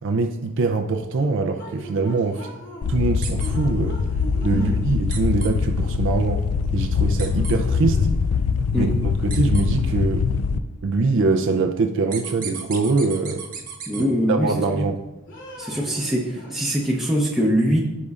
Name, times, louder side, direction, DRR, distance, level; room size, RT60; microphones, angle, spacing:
voice 1, 0.0-2.5 2.9-4.0 4.4-8.1 8.8-10.3 10.8-13.5 14.0-15.1, right 3 dB, 55° right, 5 dB, 0.5 m, -23 dB
sound 1, 1.5-2.9 3.3-5.2 6.6-6.7 7.2-8.3 9.7-10.6 11.0-12.2 12.7-13.6 13.9-14.9 15.3-17.1, equal, 55° left, 2.8 m, -42 dB
sound 2, 2.8-10.6, left 5 dB, 85° left, 0.4 m, -23 dB
sound 3, 3.2-3.5 5.1-5.5 7.2-7.5 9.3-9.6 12.1-14.0, right 6 dB, 40° right, 1.1 m, -34 dB
voice 2, 13.9-14.5 14.8-14.9 15.6-17.8, equal, ahead, -4 dB, 0.8 m, -22 dB
14.5 x 5.3 x 2.4 m, 1.0 s
head